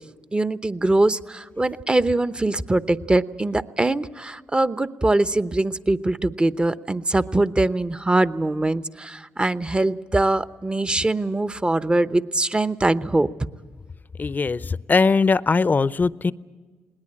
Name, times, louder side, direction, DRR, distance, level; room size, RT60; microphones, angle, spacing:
voice 1, 0.3-13.3, right 2 dB, 20° right, 14 dB, 0.9 m, -22 dB
voice 2, 14.2-16.3, left 4 dB, 35° left, 18 dB, 0.6 m, -20 dB
20.5 x 19.0 x 8.7 m, 1.4 s
supercardioid pair, 55°, 5 cm